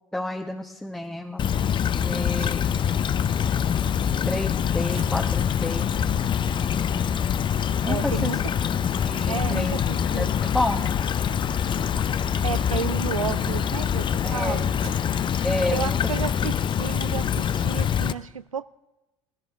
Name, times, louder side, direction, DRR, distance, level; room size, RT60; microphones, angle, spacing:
voice 1, 0.1-1.5 2.0-2.7 4.1-5.9 7.8-8.3 9.0-9.8 10.2-10.3 10.5-11.0 14.2-14.6 15.4-16.0, left 1 dB, 5° left, 1.1 m, -30 dB
sound 1, 1.0-1.1 1.7-15.3, right 3 dB, 35° right, 2.1 m, -45 dB
Stream / Trickle dribble, 1.4-18.1, left 8 dB, 30° left, 0.6 m, -25 dB
voice 2, 7.9-8.4 9.3-10.3 12.4-14.7 15.7-18.6, right 7 dB, 90° right, 0.4 m, -32 dB
19.0 x 14.0 x 3.6 m
figure-of-eight pair, 65°, 17 cm